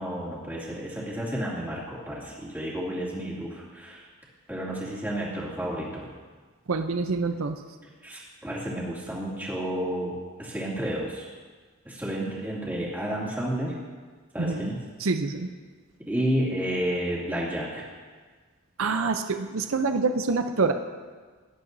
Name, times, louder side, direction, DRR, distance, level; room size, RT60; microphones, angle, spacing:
voice 1, 0.0-4.1 4.5-6.1 8.0-11.3 11.8-13.8 14.3-14.8 16.1-17.9, right 1 dB, 10° right, -7 dB, 2.5 m, -31 dB
voice 2, 6.7-7.6 14.4-14.7 15.0-15.5 18.8-20.7, right 4 dB, 65° right, 7 dB, 0.6 m, -26 dB
17.5 x 10.5 x 2.7 m, 1.5 s
head